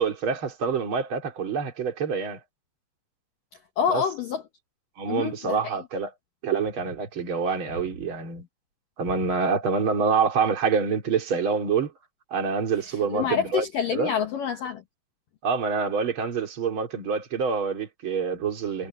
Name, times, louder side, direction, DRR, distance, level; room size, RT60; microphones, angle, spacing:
voice 1, 0.0-2.4 3.9-4.0 5.0-6.1 6.4-8.5 9.0-11.9 12.3-13.6 13.9-14.1 15.4-18.9, right 5 dB, 30° right, 3.1 m, -26 dB
voice 2, 3.8-4.4 5.1-5.8 13.1-14.8, left 8 dB, 85° left, 1.9 m, -27 dB
omnidirectional pair, 5.8 m